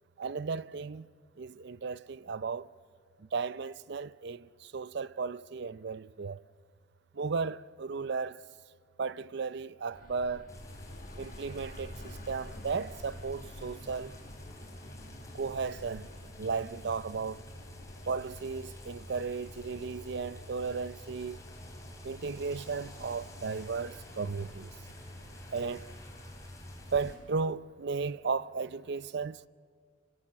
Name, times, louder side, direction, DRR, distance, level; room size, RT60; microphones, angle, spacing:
voice 1, 0.2-1.1 1.4-2.7 3.2-6.4 7.1-8.4 9.0-10.5 11.2-14.2 15.3-16.1 16.4-17.4 18.1-21.4 22.0-24.7 25.5-25.9 26.9-29.5, right 5 dB, 55° right, 0.5 m, -35 dB
sound 1, 9.9-24.6, left 1 dB, 40° left, 1.7 m, -52 dB
sound 2, 10.5-27.1, left 1 dB, 15° left, 3.5 m, -48 dB
27.5 x 16.5 x 7.2 m
head